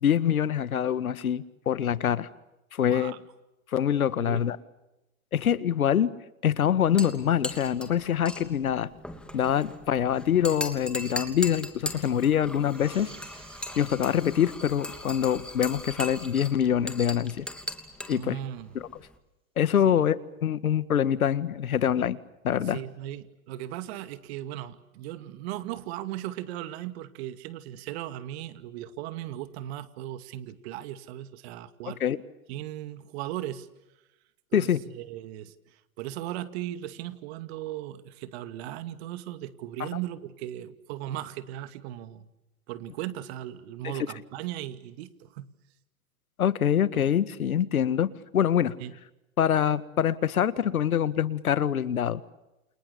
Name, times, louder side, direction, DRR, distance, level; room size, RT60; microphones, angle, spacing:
voice 1, 0.0-2.3 2.7-3.1 3.7-4.6 5.3-6.1 6.4-8.9 9.3-13.1 13.8-17.5 18.1-18.4 19.6-20.2 20.4-22.2 22.4-22.8 32.0-32.2 34.5-34.8 39.8-39.9 43.8-43.9 46.4-48.1 48.3-48.7 49.4-52.2, left 9 dB, 85° left, 16 dB, 1.8 m, -25 dB
voice 2, 2.8-3.2 4.2-4.4 18.1-18.8 19.8-20.1 22.6-32.0 32.5-33.7 34.5-42.3 42.7-45.5 48.8-49.0, right 13 dB, 50° right, 12 dB, 2.4 m, -37 dB
sound 1, 6.8-19.2, left 1 dB, ahead, 2.9 m, -39 dB
sound 2, 12.5-17.6, right 4 dB, 15° right, 5.1 m, -55 dB
29.5 x 28.5 x 7.0 m, 0.97 s
hypercardioid pair, 125°, 42 cm